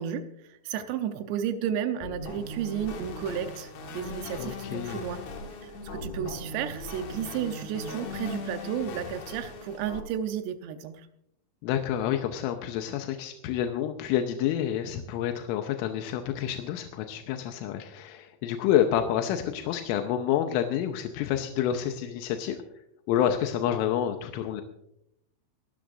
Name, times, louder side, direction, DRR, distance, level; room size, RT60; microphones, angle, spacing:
voice 1, 0.0-5.2 5.6-11.1, right 9 dB, 75° right, 8 dB, 2.7 m, -33 dB
sound 1, 2.0-10.0, left 3 dB, 70° left, 1.7 m, -39 dB
voice 2, 4.3-5.0 11.6-22.6 23.1-24.6, left 10 dB, 85° left, 5 dB, 3.3 m, -28 dB
24.5 x 12.5 x 2.6 m, 0.79 s
omnidirectional pair, 5.7 m